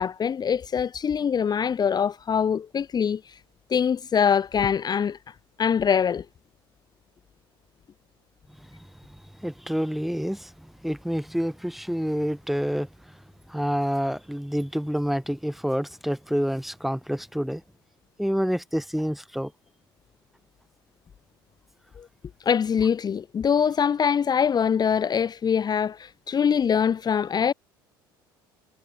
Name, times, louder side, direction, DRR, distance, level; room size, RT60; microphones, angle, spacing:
voice 1, 0.0-3.3 3.7-5.2 5.6-6.2 22.0-22.1 22.4-27.5, left 7 dB, 35° left, 1.1 m, -23 dB
voice 2, 9.0-12.9 13.5-17.6 18.2-19.5, equal, ahead, 1.7 m, -28 dB
hypercardioid pair, 65°, 12 cm